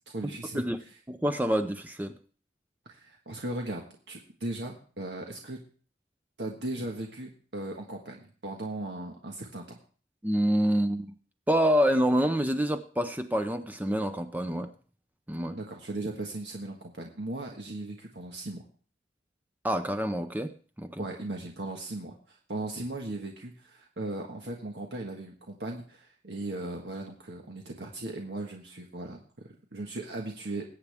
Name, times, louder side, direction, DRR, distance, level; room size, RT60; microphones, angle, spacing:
voice 1, 0.1-0.6 2.8-5.6 6.4-9.8 15.5-18.6 21.0-29.2 29.4-30.6, right 2 dB, 75° right, 1.5 m, -37 dB
voice 2, 1.1-2.1 10.2-11.1 11.5-14.7 15.3-15.6 19.6-21.0, equal, 10° right, 0.6 m, -27 dB
21.5 x 8.2 x 3.5 m
head